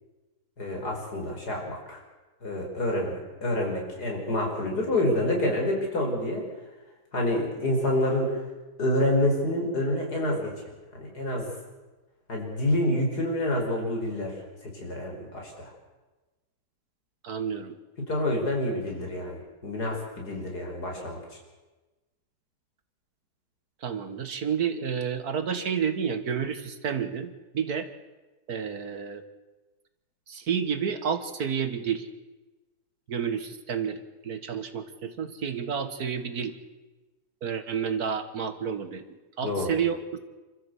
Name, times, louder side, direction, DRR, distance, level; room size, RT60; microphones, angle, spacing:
voice 1, 0.6-2.0 2.4-6.4 7.1-8.4 8.8-11.5 12.3-14.3 14.6-15.7 18.0-21.2 39.4-39.7, left 1 dB, 70° left, 0 dB, 5.6 m, -28 dB
voice 2, 17.2-17.8 23.8-27.9 28.5-29.2 30.3-32.1 33.1-36.6 37.4-40.2, right 7 dB, 65° right, 10 dB, 1.9 m, -30 dB
27.0 x 14.0 x 8.2 m, 1.2 s
omnidirectional pair, 1.8 m